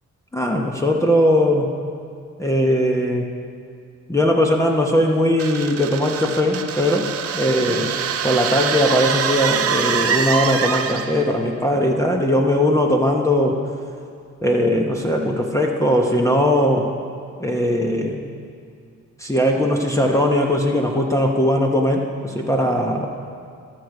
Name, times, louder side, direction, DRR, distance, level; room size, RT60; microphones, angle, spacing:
voice 1, 0.3-1.7 2.4-3.3 4.1-7.1 7.3-7.9 8.2-13.6 14.4-16.9 17.4-18.2 19.2-23.1, left 1 dB, 10° left, 1 dB, 1.1 m, -19 dB
sound 1, 5.4-11.3, right 7 dB, 50° right, 0.9 m, -24 dB
20.0 x 6.8 x 4.9 m, 2.3 s
cardioid pair, 90°, 30 cm